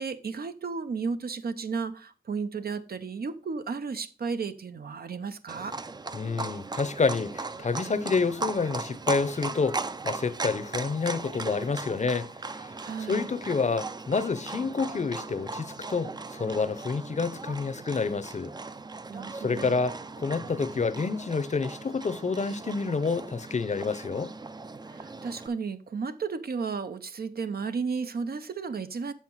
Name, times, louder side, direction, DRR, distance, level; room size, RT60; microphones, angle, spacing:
voice 1, 0.0-5.7 12.8-13.3 19.1-19.8 24.9-29.1, right 5 dB, 70° right, 0.7 m, -33 dB
Livestock farm animals working animals, 5.5-25.5, right 3 dB, 25° right, 0.4 m, -38 dB
voice 2, 6.1-12.7 13.1-18.5 19.3-24.3, left 4 dB, 45° left, 0.6 m, -28 dB
7.2 x 5.7 x 4.5 m
wide cardioid pair, 105°, 16 cm